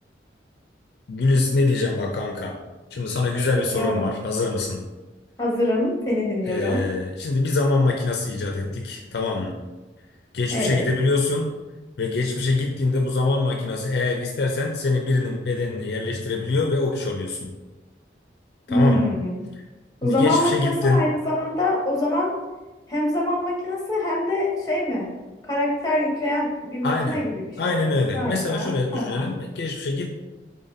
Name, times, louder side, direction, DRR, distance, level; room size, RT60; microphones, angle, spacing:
voice 1, 1.1-2.5 2.9-4.8 6.5-9.5 10.3-11.5 12.0-17.5 18.7-19.1 20.0-21.0 26.8-27.2 27.6-30.2, left 3 dB, 60° left, 1 dB, 0.4 m, -24 dB
voice 2, 3.5-4.1 5.4-6.8 10.5-10.9 18.7-19.4 20.0-22.3 22.9-25.1 25.4-29.3, left 1 dB, 20° left, -2 dB, 0.9 m, -25 dB
4.0 x 3.5 x 2.6 m, 1.1 s
head